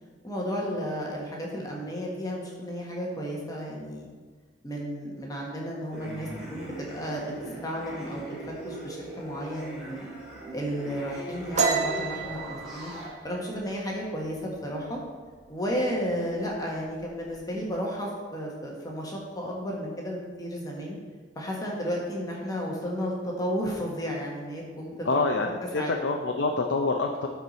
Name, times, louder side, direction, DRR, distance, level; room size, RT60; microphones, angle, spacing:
voice 1, 0.2-4.1 4.6-8.3 8.6-10.1 10.5-12.9 13.2-15.0 15.5-21.0 21.3-25.1 25.7-25.9, equal, 20° left, -2 dB, 1.3 m, -33 dB
sound 1, 5.9-13.1, right 1 dB, 5° right, 2.6 m, -40 dB
sound 2, 11.6-15.0 15.3-15.7 16.0-16.6 16.8-17.6, right 4 dB, 40° right, 1.1 m, -30 dB
voice 2, 25.1-27.3, left 3 dB, 70° left, 2 dB, 0.6 m, -26 dB
13.5 x 4.7 x 4.1 m, 1.5 s
head